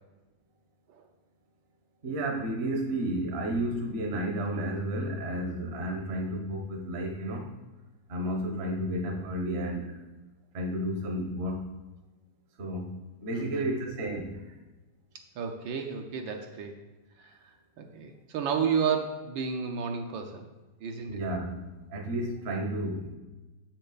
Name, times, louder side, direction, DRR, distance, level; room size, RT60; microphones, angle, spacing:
voice 1, 2.0-7.5 8.1-10.0 10.5-11.6 12.6-14.6 21.1-21.6 21.9-23.1, right 1 dB, 45° right, 2 dB, 0.9 m, -32 dB
voice 2, 13.3-13.7 15.3-16.8 17.2-20.5 20.8-21.2, right 6 dB, 70° right, 4 dB, 1.4 m, -32 dB
6.8 x 6.7 x 4.0 m, 1.1 s
omnidirectional pair, 2.3 m